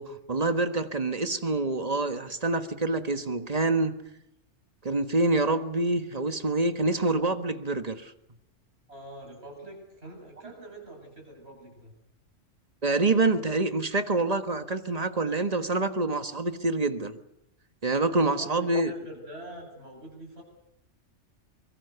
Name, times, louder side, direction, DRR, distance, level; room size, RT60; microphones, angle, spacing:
voice 1, 0.0-3.9 4.8-8.1 12.8-17.2 17.8-18.9, right 2 dB, 35° right, 1.4 m, -26 dB
voice 2, 8.9-11.9 18.2-20.4, right 1 dB, 60° right, 8.2 m, -45 dB
24.5 x 23.0 x 6.9 m
omnidirectional pair, 1.2 m